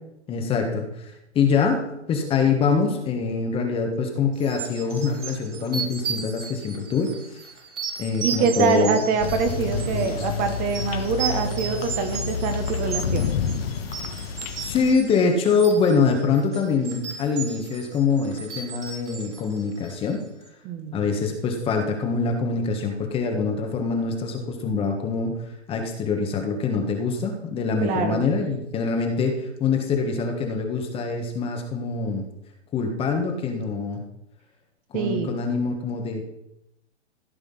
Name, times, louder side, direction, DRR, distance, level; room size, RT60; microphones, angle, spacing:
voice 1, 0.3-7.4 8.0-9.0 9.6-10.2 14.6-20.2 20.9-25.4 25.7-32.2 32.7-34.0 34.9-36.2, left 5 dB, 15° left, 4 dB, 1.5 m, -24 dB
sound 1, 4.4-20.2, right 6 dB, 85° right, 4.3 m, -35 dB
voice 2, 8.2-13.3 20.6-21.0 27.8-28.2 34.9-35.3, right 5 dB, 25° right, 6 dB, 1.4 m, -24 dB
sound 2, 9.2-14.9, left 6 dB, 55° left, 1.6 m, -29 dB
15.0 x 7.1 x 5.5 m, 0.83 s
hypercardioid pair, 145°, 35 cm